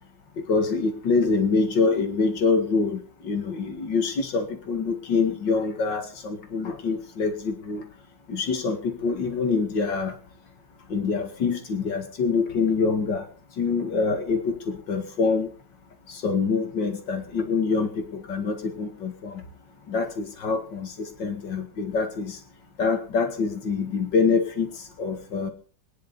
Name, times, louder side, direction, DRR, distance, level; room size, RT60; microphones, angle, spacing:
voice 1, 0.5-7.8 8.3-10.2 10.9-13.3 13.6-15.5 16.1-19.4 19.9-22.4 22.8-25.5, left 4 dB, 90° left, 6 dB, 2.7 m, -25 dB
21.0 x 10.5 x 5.4 m, 0.40 s
omnidirectional pair, 1.9 m